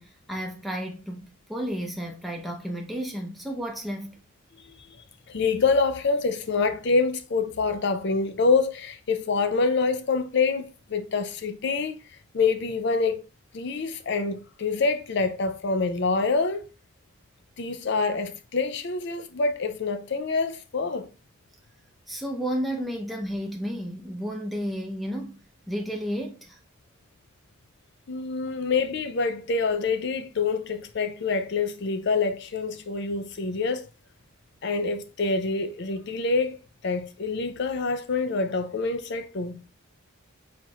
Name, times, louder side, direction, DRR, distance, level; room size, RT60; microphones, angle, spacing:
voice 1, 0.0-4.2 22.1-25.4 25.7-26.6 28.4-28.5, equal, ahead, 0.7 m, -32 dB
voice 2, 5.3-12.0 12.3-13.2 13.5-16.7 17.6-21.1 28.1-33.9 34.6-36.6 36.8-39.6, left 4 dB, 50° left, 0.5 m, -26 dB
4.4 x 4.2 x 2.4 m
head